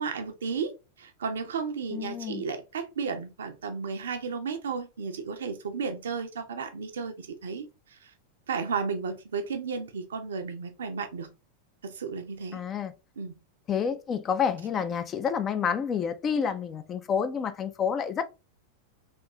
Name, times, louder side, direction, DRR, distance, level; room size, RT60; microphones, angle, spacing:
voice 1, 0.0-8.1 8.5-11.3 11.8-12.6 13.2-13.4, right 5 dB, 65° right, 0.5 m, -33 dB
voice 2, 1.9-2.4 12.5-12.9 13.7-18.2, left 7 dB, 25° left, 0.4 m, -29 dB
3.4 x 2.6 x 2.8 m
figure-of-eight pair, 90°, 0 cm